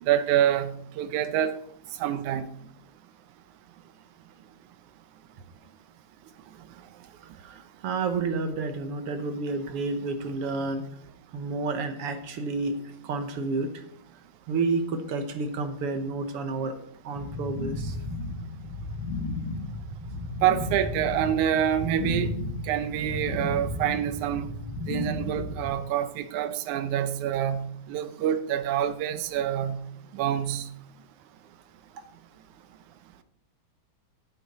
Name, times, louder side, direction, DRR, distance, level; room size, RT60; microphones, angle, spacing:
voice 1, 0.0-1.5 2.0-2.4 20.4-22.3 22.7-24.5 24.9-29.8 30.1-30.7, right 10 dB, 80° right, 2.2 m, -26 dB
voice 2, 7.3-10.9 11.3-12.8 13.0-13.9 14.5-16.7 17.0-18.0, right 3 dB, 65° right, 1.6 m, -30 dB
sound 1, 17.1-25.7, left 2 dB, 50° left, 4.5 m, -33 dB
10.5 x 8.9 x 4.1 m
omnidirectional pair, 3.4 m